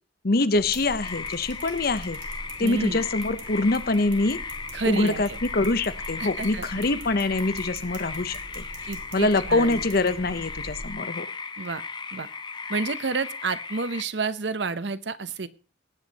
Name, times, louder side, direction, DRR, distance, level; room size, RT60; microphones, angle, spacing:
voice 1, 0.2-2.2 2.6-4.4 4.9-8.7 9.1-11.3, left 2 dB, 55° left, 14 dB, 0.9 m, -24 dB
sound 1, 0.5-10.9, right 1 dB, 85° right, 3.0 m, -42 dB
sound 2, 1.0-14.0, left 5 dB, 25° left, 0.8 m, -37 dB
voice 2, 2.6-3.0 4.7-5.4 6.2-6.7 8.8-9.9 11.6-11.8 12.1-12.3 12.7-15.5, right 4 dB, 70° right, 14 dB, 0.9 m, -30 dB
18.5 x 8.1 x 4.1 m, 0.35 s
head